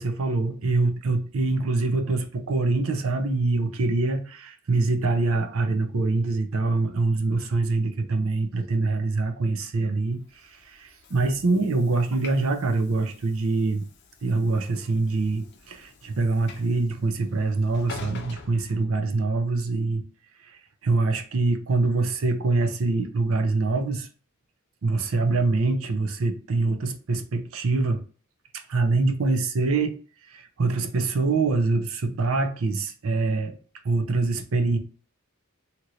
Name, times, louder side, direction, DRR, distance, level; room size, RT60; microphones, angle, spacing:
voice 1, 0.0-10.2 10.7-13.9 14.2-20.0 20.8-24.1 24.8-28.0 28.7-30.0 30.3-33.5 33.8-34.8, right 3 dB, 70° right, 0.6 m, -24 dB
Train / Sliding door, 10.2-19.5, left 4 dB, 55° left, 0.6 m, -46 dB
2.9 x 2.5 x 3.0 m
head